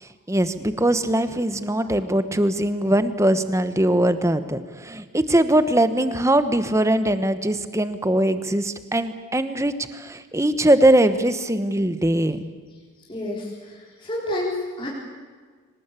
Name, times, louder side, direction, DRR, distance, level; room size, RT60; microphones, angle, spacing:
voice 1, 0.0-12.4, right 1 dB, 15° right, 11 dB, 1.1 m, -21 dB
voice 2, 13.1-14.9, left 1 dB, 25° left, -4 dB, 4.1 m, -30 dB
24.5 x 19.0 x 8.4 m, 1.5 s
head